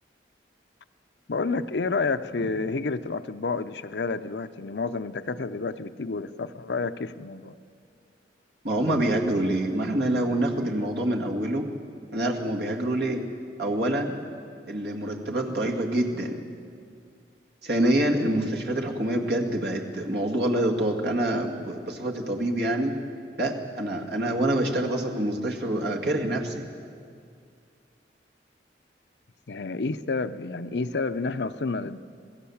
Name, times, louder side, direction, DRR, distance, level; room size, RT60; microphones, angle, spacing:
voice 1, 1.3-7.6 29.5-32.0, left 4 dB, 70° left, 10 dB, 0.7 m, -29 dB
voice 2, 8.6-11.7 12.1-13.2 13.6-14.2 14.7-16.4 17.6-22.9 23.4-26.7, right 1 dB, 65° right, 1 dB, 2.1 m, -26 dB
27.0 x 17.5 x 7.2 m, 2.3 s
head